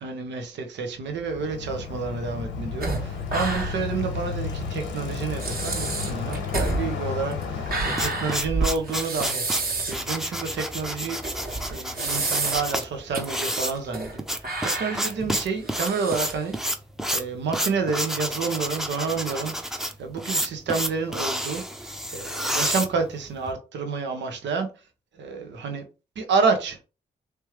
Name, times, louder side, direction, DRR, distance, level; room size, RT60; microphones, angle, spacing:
voice 1, 0.0-11.2 11.7-16.5 17.1-24.7 25.1-25.8 26.2-26.8, right 4 dB, 65° right, 1.0 m, -29 dB
Bicycle, 1.1-8.6, left 5 dB, 80° left, 1.1 m, -32 dB
sound 1, 2.8-4.0 4.3-4.4 5.0-5.1 5.4-10.0 10.5-10.6 11.2-12.8 13.1-13.2 13.7-14.2 14.4-16.6, right 3 dB, 50° right, 1.7 m, -29 dB
sound 2, 7.6-23.5, equal, ahead, 0.8 m, -30 dB
3.3 x 3.2 x 3.2 m
hypercardioid pair, 40°, 19 cm